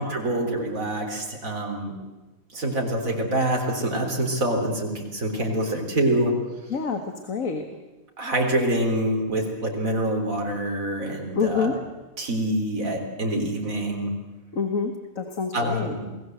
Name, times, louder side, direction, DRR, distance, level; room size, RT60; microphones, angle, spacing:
voice 1, 0.0-2.0 2.5-6.3 8.2-11.8 12.2-14.1 15.5-16.1, right 1 dB, 75° right, 1 dB, 4.1 m, -26 dB
voice 2, 6.7-7.7 11.3-11.8 14.5-15.9, left 5 dB, 70° left, 7 dB, 2.0 m, -27 dB
28.5 x 19.0 x 7.9 m, 1.1 s
omnidirectional pair, 1.4 m